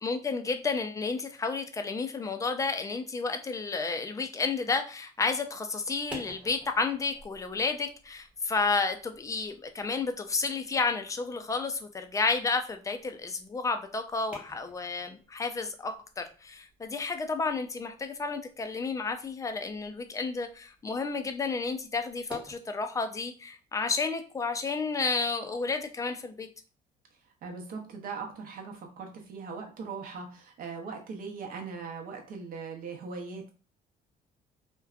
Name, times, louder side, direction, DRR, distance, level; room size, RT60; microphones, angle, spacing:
voice 1, 0.0-26.5, left 4 dB, 20° left, 7 dB, 0.3 m, -31 dB
sound 1, 5.8-22.6, right 1 dB, 5° right, 0.9 m, -53 dB
voice 2, 27.4-33.5, right 5 dB, 55° right, 2 dB, 0.7 m, -40 dB
2.6 x 2.1 x 2.4 m, 0.37 s
cardioid pair, 110°, 17 cm